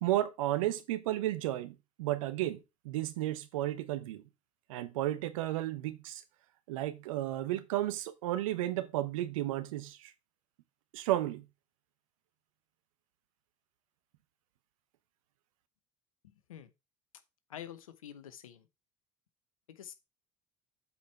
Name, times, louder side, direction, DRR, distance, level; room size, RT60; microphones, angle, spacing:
voice 1, 0.0-2.6 2.8-4.2 4.7-6.2 6.7-10.1 10.9-11.4, right 14 dB, 80° right, 1.0 m, -33 dB
voice 2, 17.5-18.7 19.7-19.9, left 10 dB, 90° left, 0.9 m, -47 dB
8.2 x 4.6 x 4.5 m
hypercardioid pair, 70°, 17 cm